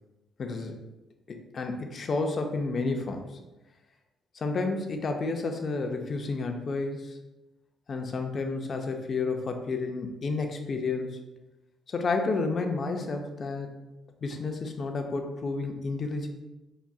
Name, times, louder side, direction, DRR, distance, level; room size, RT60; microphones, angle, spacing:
voice 1, 0.4-0.8 1.3-3.4 4.3-7.2 7.9-11.2 11.9-13.7 14.2-16.3, left 3 dB, 45° left, 4 dB, 0.4 m, -31 dB
3.8 x 2.4 x 2.3 m, 1.0 s
cardioid pair, 90°, 0 cm